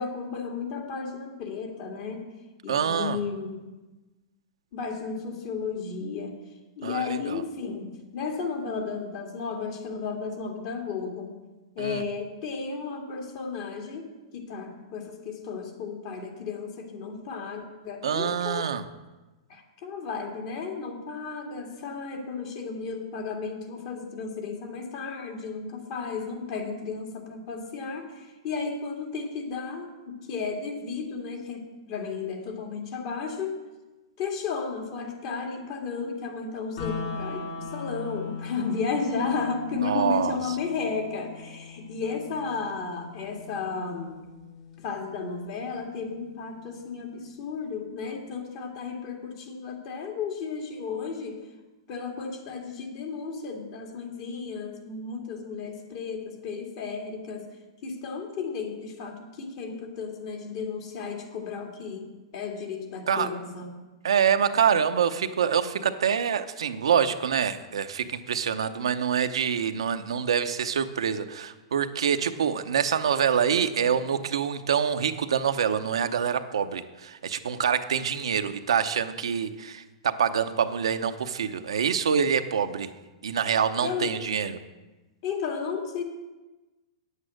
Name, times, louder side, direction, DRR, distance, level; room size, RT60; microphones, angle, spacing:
voice 1, 0.0-2.3 2.6-3.7 4.7-6.4 6.8-11.3 11.8-18.7 19.5-33.6 34.2-44.2 44.8-51.4 51.9-57.5 57.8-63.8 83.8-84.1 85.2-86.0, left 5 dB, 50° left, 2 dB, 2.1 m, -33 dB
voice 2, 2.7-3.2 6.8-7.4 11.8-12.0 18.0-18.8 39.8-40.4 63.1-63.3 64.0-82.9 83.2-84.6, right 7 dB, 85° right, 8 dB, 0.7 m, -26 dB
sound 1, 36.8-46.8, left 4 dB, 70° left, 3.1 m, -41 dB
9.6 x 8.3 x 6.4 m, 1.1 s
hypercardioid pair, 130°, 3 cm